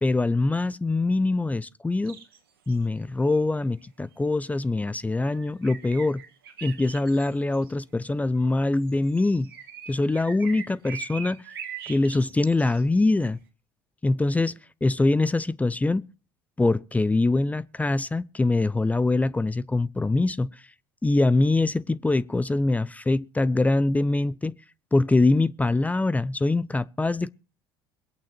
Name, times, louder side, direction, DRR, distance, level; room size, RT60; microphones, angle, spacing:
voice 1, 0.0-2.2 2.7-6.2 6.6-9.5 9.9-11.4 11.9-13.4 14.0-16.1 16.6-20.5 21.0-24.5 24.9-27.3, left 2 dB, 10° left, 0.6 m, -23 dB
sound 1, 2.0-2.4 2.7-2.8 3.2-3.4 5.3-7.7 8.6-12.8 13.2-13.3, right 7 dB, 85° right, 1.9 m, -41 dB
22.5 x 8.6 x 4.4 m
hypercardioid pair, 65°, 12 cm